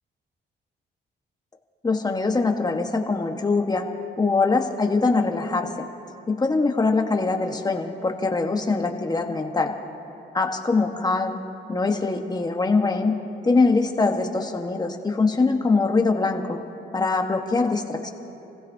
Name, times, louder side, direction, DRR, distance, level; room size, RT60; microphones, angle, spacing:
voice 1, 1.8-3.9 4.2-5.9 6.3-9.7 10.3-11.4 11.7-13.2 13.4-16.6 16.9-18.1, left 3 dB, 20° left, 3 dB, 1.3 m, -23 dB
29.5 x 15.5 x 2.8 m, 2.9 s
cardioid pair, 90°, 20 cm